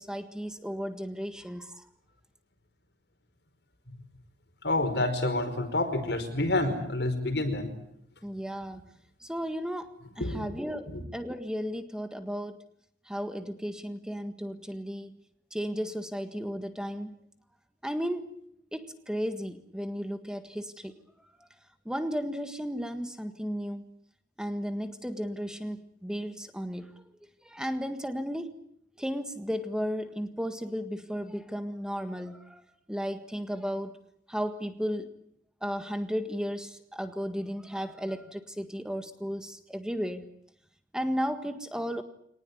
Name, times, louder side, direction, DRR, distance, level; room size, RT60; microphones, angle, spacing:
voice 1, 0.0-1.9 8.2-8.9 9.2-12.6 13.0-15.2 15.5-17.1 17.8-18.3 18.7-20.9 21.8-23.8 24.4-26.9 27.4-28.5 29.0-32.6 32.9-34.0 34.3-35.1 35.6-40.3 40.9-42.0, equal, 5° right, 8 dB, 1.7 m, -34 dB
voice 2, 4.6-7.7 10.2-10.5 10.9-11.0, left 2 dB, 75° left, 8 dB, 5.2 m, -28 dB
24.5 x 19.5 x 9.9 m, 0.72 s
head